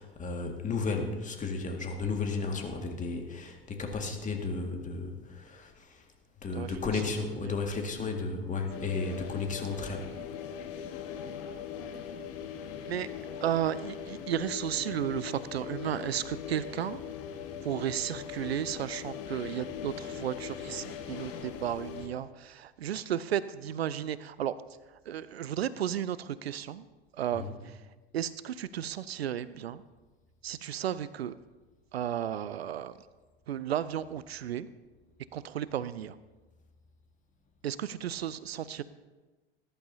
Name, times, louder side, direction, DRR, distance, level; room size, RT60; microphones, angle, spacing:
voice 1, 0.0-6.1 6.4-10.2 27.3-27.6, left 4 dB, 25° left, 2 dB, 1.9 m, -34 dB
voice 2, 6.5-7.0 7.4-7.5 12.9-13.1 13.4-17.0 17.6-24.6 25.1-26.9 27.1-27.8 28.1-29.8 30.4-31.3 31.9-32.9 33.5-34.7 35.3-36.2 37.6-38.8, right 10 dB, 80° right, 17 dB, 0.5 m, -34 dB
sound 1, 8.7-22.1, left 8 dB, 50° left, 1.6 m, -40 dB
20.0 x 11.0 x 2.8 m, 1.2 s
figure-of-eight pair, 80°, 31 cm